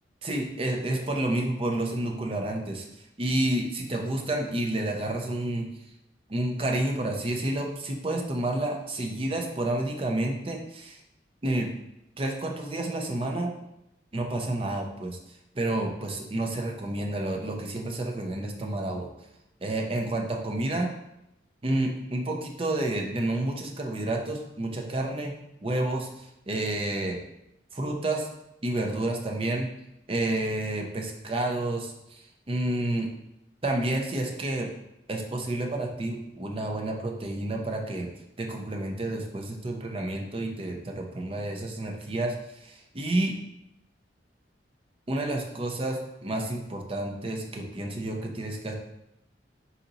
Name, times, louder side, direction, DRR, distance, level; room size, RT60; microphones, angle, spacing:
voice 1, 0.2-2.9 3.2-5.7 6.3-11.0 11.4-11.7 12.2-13.5 14.1-15.2 15.5-19.1 19.6-20.9 21.6-25.3 25.6-27.2 27.7-28.3 28.6-29.7 30.1-33.1 33.6-34.7 35.1-38.1 38.4-42.3 42.6-43.3 45.1-48.7, right 1 dB, 30° right, 1 dB, 0.5 m, -30 dB
4.0 x 2.8 x 3.9 m, 0.85 s
head